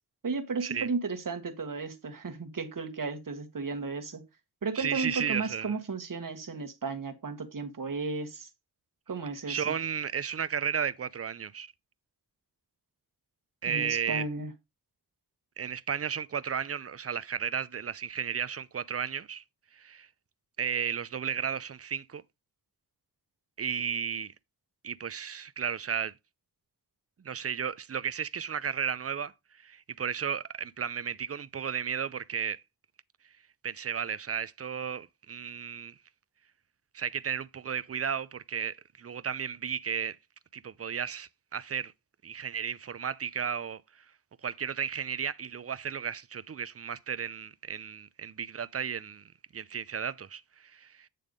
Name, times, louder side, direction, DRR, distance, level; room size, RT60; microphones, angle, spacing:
voice 1, 0.2-4.2 4.6-8.5 9.1-9.7 13.7-14.5, right 4 dB, 55° right, 1.5 m, -34 dB
voice 2, 4.7-5.7 9.5-11.7 13.6-14.2 15.6-19.4 19.7-20.1 20.6-22.2 23.6-24.3 24.8-26.1 27.2-29.3 29.6-32.6 33.6-35.9 36.9-40.2 40.5-41.9 42.2-43.8 44.4-49.2 49.5-51.1, right 7 dB, 40° right, 0.6 m, -34 dB
9.2 x 3.3 x 5.2 m
cardioid pair, 60°, 39 cm